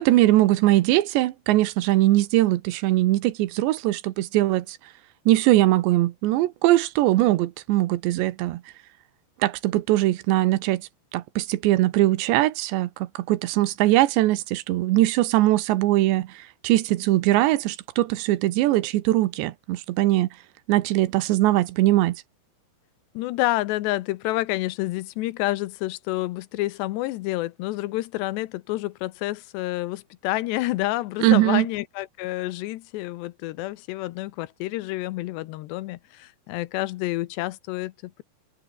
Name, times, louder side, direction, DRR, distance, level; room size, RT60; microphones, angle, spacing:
voice 1, 0.0-4.8 5.3-8.6 9.4-10.8 11.1-20.3 20.7-22.2 31.2-31.7, right 16 dB, 80° right, 3.2 m, -21 dB
voice 2, 23.1-38.2, left 18 dB, 80° left, 2.8 m, -29 dB
omnidirectional pair, 5.1 m